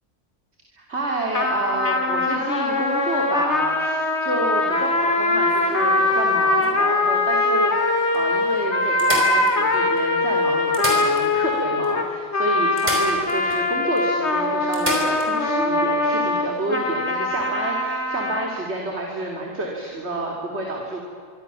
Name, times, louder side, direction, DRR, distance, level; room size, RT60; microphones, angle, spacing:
voice 1, 0.7-21.0, right 2 dB, 50° right, 0 dB, 3.6 m, -29 dB
sound 1, 1.3-18.5, left 2 dB, 50° left, 2.7 m, -22 dB
sound 2, 5.5-7.1 7.8-7.9 8.1-8.2 9.0-10.0 10.6-11.6 11.8-11.9 12.8-13.6 14.0-14.1 14.7-15.3 17.3-17.4, equal, 30° right, 5.8 m, -30 dB
26.0 x 24.5 x 7.1 m, 2.3 s
omnidirectional pair, 1.4 m